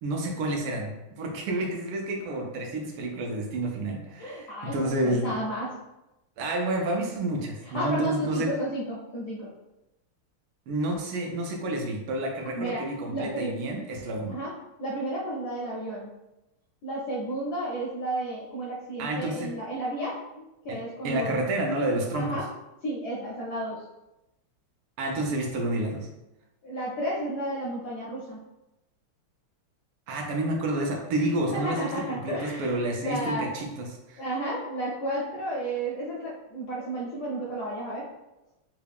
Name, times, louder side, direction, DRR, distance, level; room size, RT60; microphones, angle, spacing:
voice 1, 0.0-5.3 6.4-8.5 10.7-14.3 19.0-19.5 20.7-22.4 25.0-26.1 30.1-34.2, right 1 dB, 80° right, 1 dB, 1.5 m, -29 dB
voice 2, 4.2-5.7 7.6-9.5 12.5-12.8 13.1-13.5 14.3-14.5 14.8-16.1 16.8-21.4 22.1-22.4 22.8-23.8 26.6-28.4 31.5-32.7 33.0-33.5 34.2-38.1, right 1 dB, 70° left, -5 dB, 0.9 m, -32 dB
3.8 x 2.3 x 3.4 m, 0.95 s
omnidirectional pair, 2.4 m